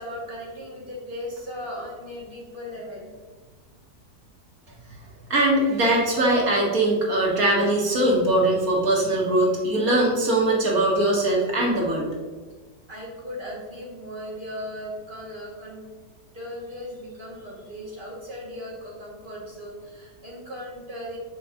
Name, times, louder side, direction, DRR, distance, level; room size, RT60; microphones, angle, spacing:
voice 1, 0.0-3.1 12.9-15.8 16.3-21.2, equal, 30° right, -4 dB, 2.3 m, -37 dB
voice 2, 5.3-12.1, right 1 dB, 60° right, -3 dB, 2.3 m, -21 dB
6.8 x 5.2 x 5.1 m, 1.4 s
omnidirectional pair, 1.7 m